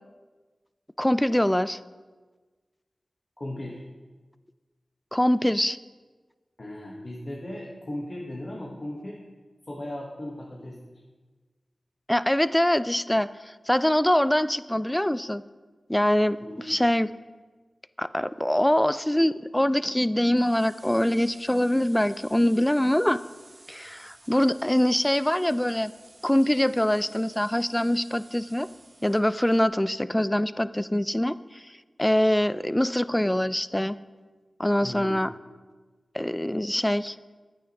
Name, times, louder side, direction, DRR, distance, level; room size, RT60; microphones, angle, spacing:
voice 1, 1.0-1.8 5.1-5.8 12.1-15.4 15.9-17.1 18.0-23.2 23.7-25.9 26.2-28.7 29.0-31.6 32.0-33.9 34.6-35.3 36.1-37.2, left 1 dB, 10° left, 15 dB, 0.3 m, -24 dB
voice 2, 3.4-3.8 6.6-9.2 9.7-10.8 16.4-16.8 34.8-35.2, left 1 dB, 45° left, -2 dB, 1.3 m, -37 dB
sound 1, 20.4-29.7, right 2 dB, 45° right, 1.0 m, -53 dB
10.5 x 9.0 x 3.0 m, 1.3 s
cardioid pair, 45°, 0 cm